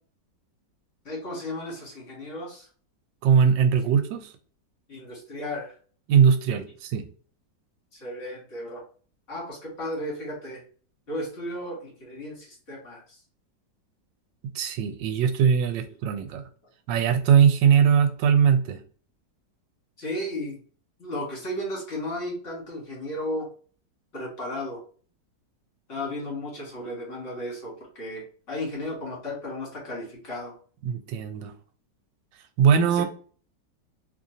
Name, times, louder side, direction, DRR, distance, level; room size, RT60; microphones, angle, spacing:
voice 1, 1.0-2.7 4.9-5.7 7.9-8.8 9.3-10.6 11.1-13.2 15.7-15.8 20.0-20.6 21.0-23.5 24.1-24.8 25.9-30.6 32.9-33.1, left 1 dB, 40° left, -4 dB, 2.2 m, -34 dB
voice 2, 3.2-4.3 6.1-7.0 14.5-16.5 16.9-18.8 30.8-31.5 32.6-33.0, right 7 dB, 85° right, 8 dB, 1.3 m, -20 dB
3.7 x 3.1 x 2.7 m, 0.41 s
omnidirectional pair, 1.9 m